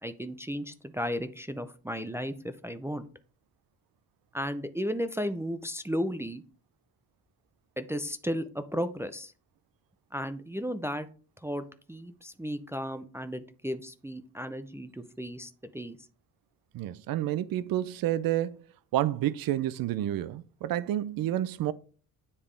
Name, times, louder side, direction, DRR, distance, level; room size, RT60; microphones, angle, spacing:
voice 1, 0.0-3.0 4.3-6.4 7.8-9.3 10.1-11.1 11.4-16.0, equal, 5° right, 0.4 m, -34 dB
voice 2, 16.7-18.6 18.9-21.7, right 13 dB, 70° right, 0.5 m, -29 dB
9.6 x 3.4 x 3.3 m
cardioid pair, 85°, 37 cm